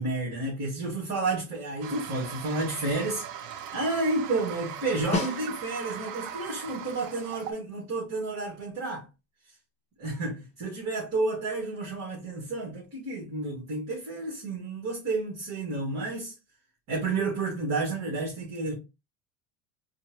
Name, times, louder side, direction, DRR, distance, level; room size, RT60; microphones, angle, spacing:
voice 1, 0.0-9.0 10.0-16.3 16.9-18.7, right 2 dB, 45° right, 2.0 m, -31 dB
Toilet flush, 1.8-7.5, right 9 dB, 60° right, 0.7 m, -39 dB
Snare drum, 5.1-6.0 10.5-10.6, left 3 dB, 15° left, 1.4 m, -32 dB
4.4 x 2.6 x 3.0 m
cardioid pair, 130°, 38 cm